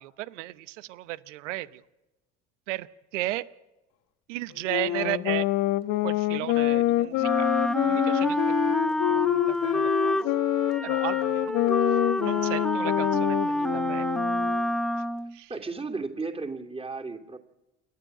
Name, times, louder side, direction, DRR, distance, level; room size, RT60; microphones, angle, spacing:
voice 1, 0.0-1.8 2.7-2.9 3.1-3.5 4.3-5.5 6.0-7.5 7.8-8.7 9.1-9.2 9.5-10.2 10.8-11.5 12.2-14.1 15.3-15.5, right 17 dB, 80° right, 18 dB, 0.9 m, -34 dB
sound 1, 4.7-14.7, left 16 dB, 65° left, 1.2 m, -26 dB
Wind instrument woodwind instrument, 7.2-15.3, equal, ahead, 0.9 m, -28 dB
voice 2, 15.5-17.4, right 3 dB, 15° right, 4 dB, 2.9 m, -34 dB
28.5 x 12.5 x 8.9 m, 1.0 s
hypercardioid pair, 65°, 36 cm